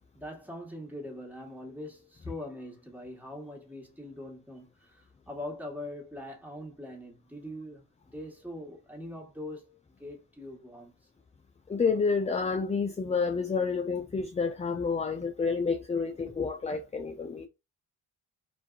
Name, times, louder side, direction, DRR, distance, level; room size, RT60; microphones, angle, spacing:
voice 1, 0.1-10.9, left 1 dB, 5° right, 1.3 m, -42 dB
voice 2, 11.7-17.5, left 5 dB, 15° left, 0.3 m, -29 dB
2.6 x 2.3 x 2.3 m
supercardioid pair, 45°, 45 cm